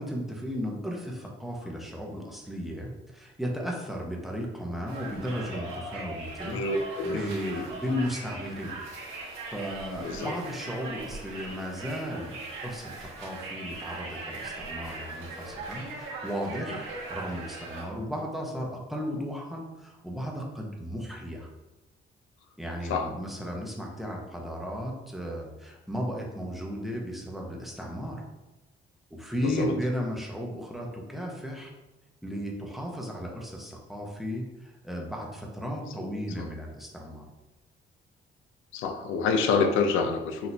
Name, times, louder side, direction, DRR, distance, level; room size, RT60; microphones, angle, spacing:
voice 1, 0.0-6.6 7.0-8.7 9.1-21.5 22.6-28.2 29.1-31.7 32.2-37.3, equal, ahead, -1 dB, 1.0 m, -35 dB
Conversation, 4.9-17.8, right 2 dB, 90° right, 1.2 m, -40 dB
voice 2, 6.5-7.2 10.0-10.3 16.7-16.8 22.9-23.1 29.4-29.8 36.0-36.1 36.4-36.5 38.7-40.5, left 4 dB, 90° left, 7 dB, 0.5 m, -27 dB
6.1 x 2.8 x 2.7 m, 1.0 s
cardioid pair, 90°, 20 cm